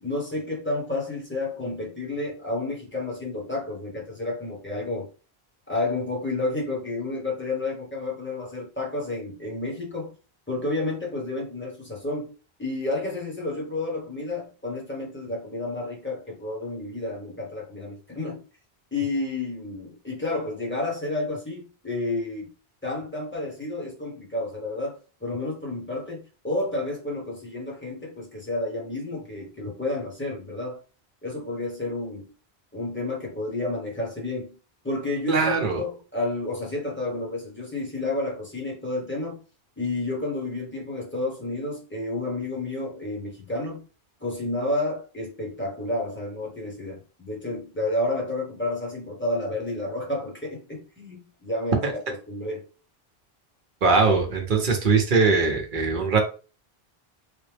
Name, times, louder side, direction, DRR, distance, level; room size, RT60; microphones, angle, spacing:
voice 1, 0.0-5.1 5.7-10.1 10.5-12.3 12.6-18.4 18.9-22.5 22.8-30.8 31.2-32.3 32.7-34.5 34.8-39.4 39.8-43.8 44.2-52.7, left 2 dB, 10° left, 1.0 m, -30 dB
voice 2, 35.3-35.8 53.8-56.2, right 4 dB, 55° right, 0.9 m, -21 dB
3.3 x 2.1 x 3.3 m
omnidirectional pair, 1.1 m